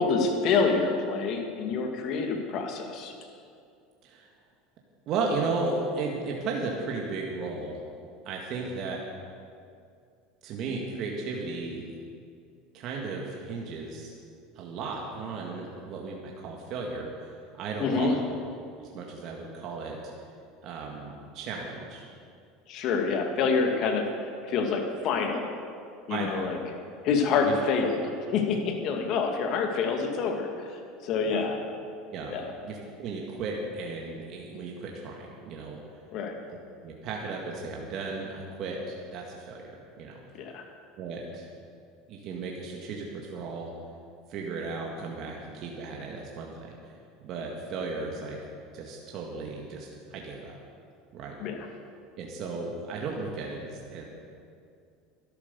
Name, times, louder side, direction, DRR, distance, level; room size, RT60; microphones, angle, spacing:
voice 1, 0.0-3.1 17.8-18.2 22.7-24.1 24.4-25.5 26.1-26.6 27.0-30.5 31.0-31.6 32.3-32.5 36.1-36.3 40.3-40.6 51.4-51.7, left 5 dB, 55° left, 4 dB, 2.1 m, -27 dB
voice 2, 5.1-7.8 8.3-9.0 10.4-12.0 12.7-14.1 14.6-18.2 18.8-20.0 20.6-22.1 26.1-26.6 27.5-27.6 31.2-31.4 32.1-35.8 36.8-40.2 40.5-40.6 41.0-41.5 42.1-43.7 44.3-46.7 47.2-48.4 48.7-50.6 51.1-51.3 52.2-54.0, right 3 dB, 55° right, -1 dB, 1.9 m, -35 dB
12.0 x 11.5 x 6.9 m, 2.4 s
supercardioid pair, 110°, 0 cm